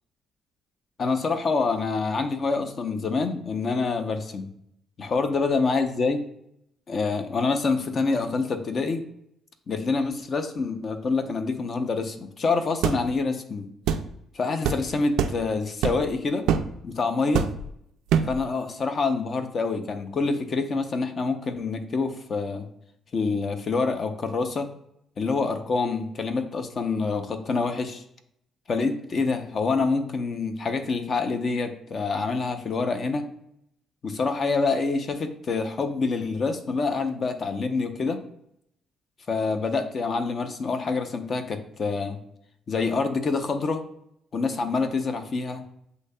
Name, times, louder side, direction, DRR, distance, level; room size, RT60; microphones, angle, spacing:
voice 1, 1.0-4.5 5.0-6.2 6.9-9.0 9.7-13.7 14.3-16.5 16.8-17.5 18.3-22.7 23.1-24.7 25.2-28.0 28.7-33.3 34.0-38.2 39.3-42.2 42.7-43.8 44.3-45.6, left 4 dB, 50° left, 7 dB, 0.6 m, -26 dB
sound 1, 12.8-13.0 13.9-14.1 14.6-14.8 15.2-15.4 15.8-16.1 16.5-16.7 17.3-17.7 18.1-18.4, right 8 dB, 85° right, 0.3 m, -24 dB
8.0 x 2.7 x 2.2 m, 0.75 s
cardioid pair, 80°, 0 cm